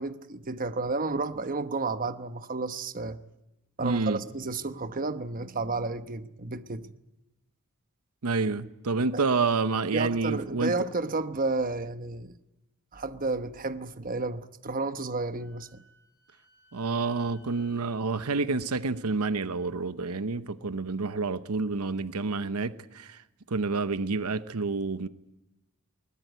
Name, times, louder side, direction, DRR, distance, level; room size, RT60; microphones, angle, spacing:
voice 1, 0.0-3.2 3.8-6.9 9.1-9.2 9.9-12.4 12.9-15.8, right 3 dB, 40° right, 1.1 m, -32 dB
voice 2, 3.8-4.2 8.2-10.7 16.7-23.2 23.5-25.1, right 4 dB, 80° right, 0.9 m, -28 dB
Wind instrument woodwind instrument, 15.3-19.8, right 3 dB, 50° left, 5.0 m, -61 dB
21.5 x 20.0 x 9.2 m
head